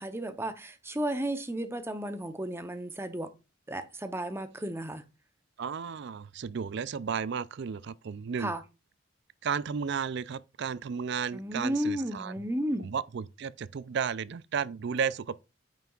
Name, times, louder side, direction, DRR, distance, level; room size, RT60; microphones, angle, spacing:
voice 1, 0.0-3.3 3.7-5.0 8.4-8.6 11.3-12.9, right 1 dB, 10° right, 0.7 m, -33 dB
voice 2, 5.6-8.5 9.4-12.4 12.8-15.4, right 6 dB, 55° right, 0.4 m, -33 dB
9.1 x 5.8 x 2.4 m
head